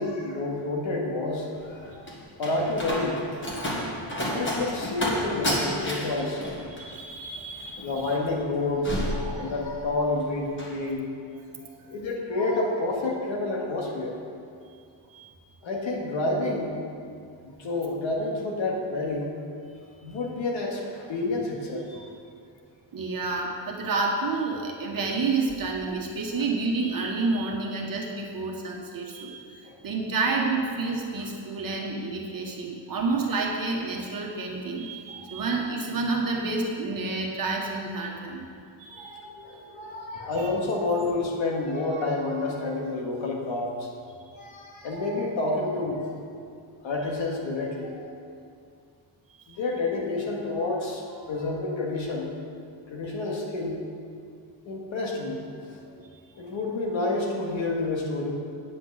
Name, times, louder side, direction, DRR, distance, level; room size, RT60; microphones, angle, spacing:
voice 1, 0.0-3.2 4.3-6.6 7.8-11.1 11.9-14.2 15.6-16.8 17.4-19.4 20.0-22.1 29.6-29.7 35.1-35.2 38.9-43.9 44.4-46.1 46.8-48.1 49.6-52.3 52.9-53.8 54.7-55.8 56.3-58.3, left 2 dB, 85° left, -1 dB, 2.0 m, -29 dB
Slam, 1.5-10.0 10.3-10.8, left 1 dB, 25° left, 1.7 m, -31 dB
voice 2, 6.8-7.9 11.6-11.9 15.1-15.3 22.9-29.4 29.8-38.5 38.8-39.2 40.4-40.5 49.3-49.6 55.8-56.1, right 3 dB, 45° right, -1 dB, 1.4 m, -29 dB
9.1 x 6.0 x 8.0 m, 2.4 s
wide cardioid pair, 160°, 45 cm